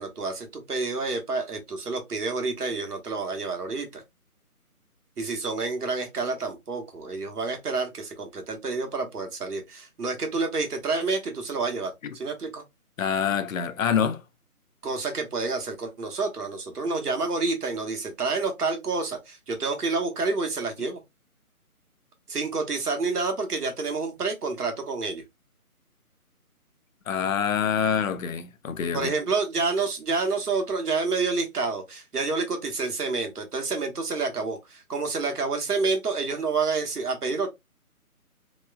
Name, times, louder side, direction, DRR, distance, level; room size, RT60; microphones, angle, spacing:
voice 1, 0.0-4.0 5.2-12.6 14.8-21.0 22.3-25.2 28.9-37.5, right 4 dB, 90° right, 1.0 m, -28 dB
voice 2, 13.0-14.2 27.1-29.1, left 7 dB, 65° left, 0.5 m, -26 dB
2.9 x 2.0 x 2.3 m
figure-of-eight pair, 160°, 45 cm